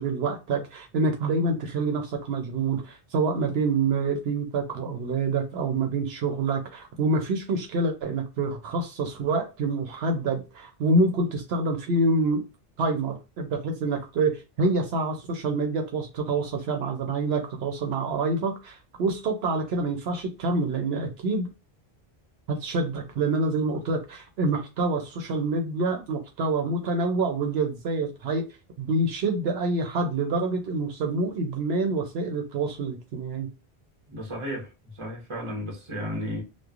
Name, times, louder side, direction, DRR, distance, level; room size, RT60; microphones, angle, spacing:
voice 1, 0.0-12.4 12.8-21.5 22.5-28.4 28.8-33.5, right 3 dB, 75° right, 0.8 m, -27 dB
voice 2, 34.1-36.4, equal, 30° right, 1.0 m, -34 dB
3.1 x 2.1 x 2.4 m
omnidirectional pair, 1.1 m